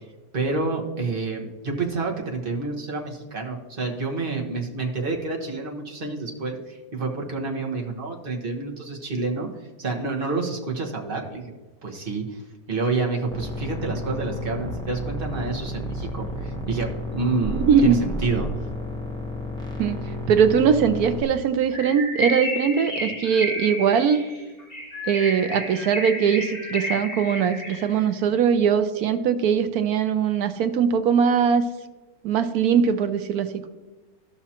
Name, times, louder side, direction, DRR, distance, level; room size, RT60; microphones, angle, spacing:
voice 1, 0.3-9.5 9.8-11.5 11.8-12.4 12.7-18.5, right 3 dB, 35° right, 0 dB, 1.3 m, -28 dB
sound 1, 13.3-21.2, left 1 dB, 5° left, 0.6 m, -31 dB
voice 2, 17.6-18.0 19.8-20.0 20.3-24.2 25.1-31.6 32.2-33.7, right 7 dB, 70° right, 9 dB, 1.0 m, -21 dB
Bird, 21.7-28.0, left 1 dB, 30° left, 2.2 m, -31 dB
14.5 x 5.9 x 2.9 m, 1.2 s
omnidirectional pair, 1.9 m